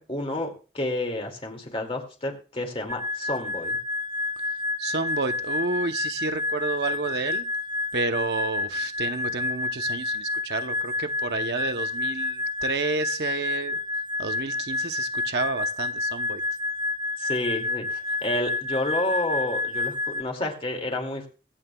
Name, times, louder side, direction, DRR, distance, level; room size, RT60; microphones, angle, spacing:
voice 1, 0.0-3.8 17.2-21.3, left 1 dB, 35° left, 3 dB, 2.4 m, -30 dB
sound 1, 2.9-20.2, left 3 dB, 25° right, 0.8 m, -29 dB
voice 2, 4.8-7.5 7.9-13.8 14.2-16.4, right 3 dB, 70° right, 8 dB, 0.9 m, -30 dB
23.0 x 8.8 x 2.3 m, 0.35 s
head